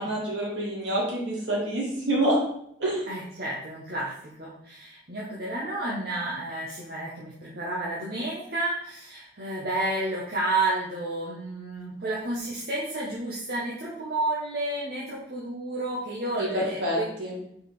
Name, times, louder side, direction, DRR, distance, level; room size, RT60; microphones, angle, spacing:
voice 1, 0.0-2.4 2.8-3.1 16.4-17.4, right 1 dB, 70° right, -5 dB, 2.8 m, -27 dB
voice 2, 3.1-17.1, right 2 dB, 55° right, -5 dB, 1.2 m, -31 dB
4.9 x 4.9 x 4.8 m, 0.72 s
head